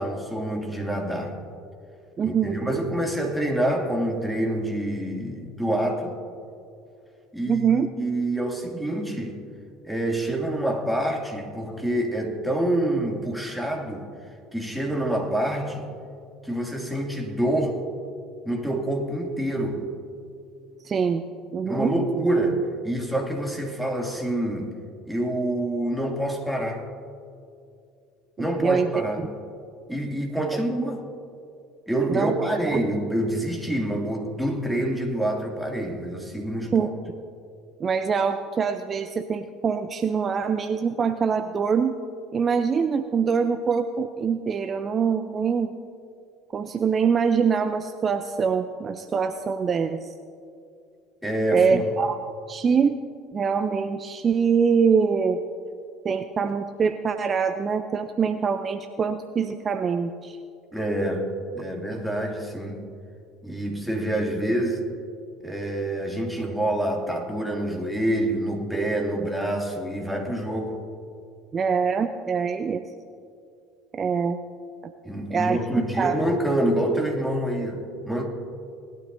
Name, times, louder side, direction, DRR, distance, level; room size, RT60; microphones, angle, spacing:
voice 1, 0.0-1.3 2.2-6.2 7.3-7.7 8.0-9.4 9.8-14.1 14.5-15.9 16.4-17.8 18.5-19.9 21.7-24.7 25.1-26.8 28.4-29.3 29.9-31.0 31.9-36.9 51.2-51.8 60.7-62.9 63.4-64.9 65.4-70.8 75.0-78.3, right 1 dB, ahead, 0 dB, 2.5 m, -27 dB
voice 2, 2.2-2.5 7.5-7.9 20.8-21.2 21.5-22.0 28.4-29.0 32.1-32.3 32.7-32.8 36.7-36.9 37.8-41.9 42.3-45.7 46.5-50.1 51.5-52.2 52.5-53.0 53.3-55.4 56.0-60.4 71.5-72.8 73.9-74.4 75.3-75.6 76.0-76.2, right 6 dB, 35° right, 8 dB, 0.5 m, -24 dB
19.5 x 12.0 x 2.7 m, 2.4 s
hypercardioid pair, 65°, 0 cm